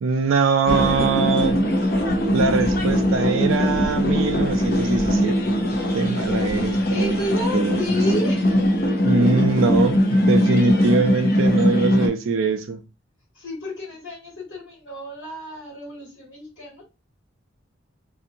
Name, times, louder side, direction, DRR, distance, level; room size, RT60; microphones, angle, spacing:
voice 1, 0.0-1.6 2.3-5.3 5.9-7.2 7.5-7.8 9.0-12.8, right 4 dB, 75° right, 0.4 m, -22 dB
sound 1, 0.7-12.1, equal, 45° left, 0.6 m, -21 dB
voice 2, 6.9-8.7 13.3-16.8, left 1 dB, 70° left, 1.4 m, -31 dB
2.7 x 2.6 x 2.6 m
head